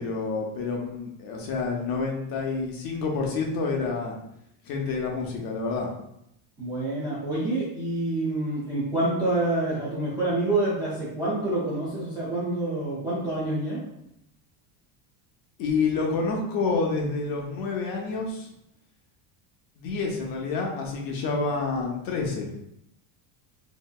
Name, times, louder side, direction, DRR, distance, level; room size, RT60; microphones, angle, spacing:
voice 1, 0.0-4.2 4.6-5.9 15.6-18.5 19.8-22.5, left 4 dB, 50° left, 0 dB, 0.7 m, -28 dB
voice 2, 6.6-13.8, right 2 dB, 10° right, -10 dB, 0.3 m, -27 dB
3.1 x 2.8 x 2.3 m, 0.78 s
cardioid pair, 155°, 46 cm